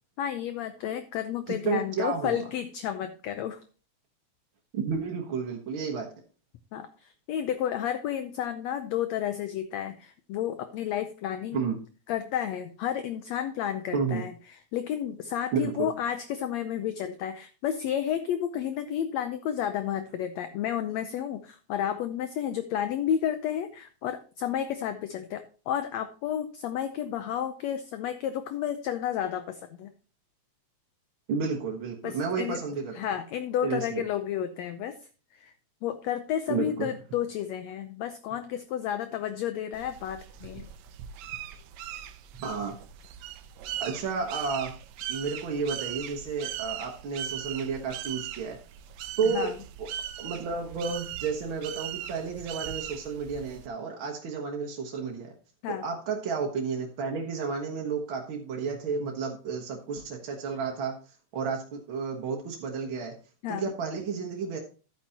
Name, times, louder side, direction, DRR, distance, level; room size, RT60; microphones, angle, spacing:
voice 1, 0.2-3.6 6.7-11.6 12.1-29.9 32.0-32.6 32.9-35.0 35.3-35.5 35.8-40.7 49.3-49.6 55.6-55.9 63.4-63.7, left 10 dB, 75° left, 9 dB, 1.7 m, -31 dB
voice 2, 1.5-2.4 4.7-6.1 11.5-11.8 13.9-14.2 15.5-15.9 31.3-33.0 33.6-34.0 36.5-36.9 42.4-42.7 43.8-44.7 45.1-48.6 49.2-49.5 49.8-49.9 50.2-55.3 55.8-63.1 63.5-64.6, right 5 dB, 55° right, 0 dB, 1.6 m, -31 dB
sound 1, 39.7-53.7, right 11 dB, 75° right, 1.8 m, -39 dB
12.0 x 9.1 x 2.9 m, 0.36 s
omnidirectional pair, 3.6 m